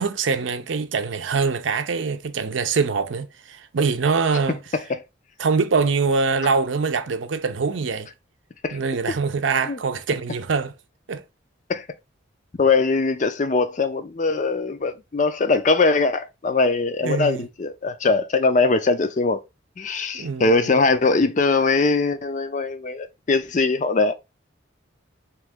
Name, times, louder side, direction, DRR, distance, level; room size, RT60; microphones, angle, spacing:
voice 1, 0.0-4.6 5.4-8.1 8.7-10.7 11.1-11.2 17.0-17.5 20.1-20.7, right 5 dB, 80° right, 0.5 m, -24 dB
voice 2, 4.7-5.0 8.6-8.8 9.7-9.8 11.7-11.9 12.6-19.4 19.8-24.1, left 3 dB, 40° left, 0.4 m, -21 dB
3.5 x 3.1 x 3.5 m
head